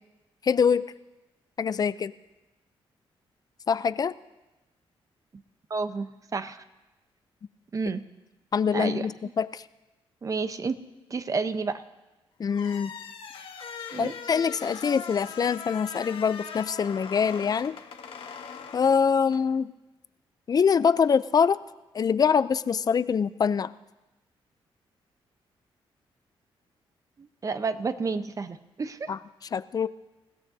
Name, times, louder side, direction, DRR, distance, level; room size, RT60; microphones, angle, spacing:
voice 1, 0.4-0.9 1.6-2.1 3.7-4.1 8.5-9.6 12.4-12.9 14.0-17.8 18.7-19.7 20.5-21.6 21.9-23.7 29.1-29.2 29.5-29.9, left 6 dB, 40° left, 15 dB, 0.5 m, -24 dB
voice 2, 5.7-6.6 7.7-8.0 8.7-9.1 10.2-10.8 11.1-11.8 13.9-14.1 27.2-29.1, right 4 dB, 35° right, 11 dB, 0.8 m, -30 dB
sound 1, 12.5-19.5, left 6 dB, 65° left, 1.3 m, -41 dB
28.5 x 16.0 x 2.7 m, 1.0 s
cardioid pair, 100°, 10 cm